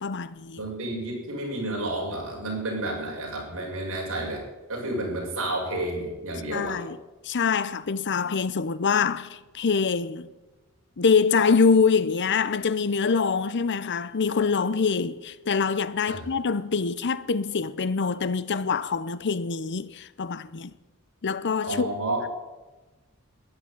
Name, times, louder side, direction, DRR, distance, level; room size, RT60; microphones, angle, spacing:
voice 1, 0.0-0.6 6.5-7.0 7.2-10.3 11.0-20.7 21.2-21.9, left 5 dB, 55° left, 0.7 m, -25 dB
voice 2, 0.6-4.4 4.7-6.8 16.1-16.2 21.6-22.3, right 1 dB, 65° right, 6.7 m, -30 dB
14.0 x 11.0 x 8.7 m
head